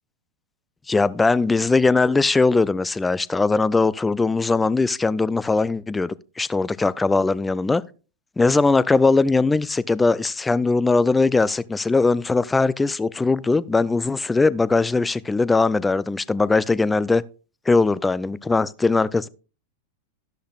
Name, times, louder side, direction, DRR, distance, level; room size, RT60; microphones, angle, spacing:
voice 1, 0.9-7.8 8.4-17.2 17.7-19.3, left 3 dB, 10° left, 0.4 m, -20 dB
12.5 x 11.5 x 2.4 m
figure-of-eight pair, 90°, 0 cm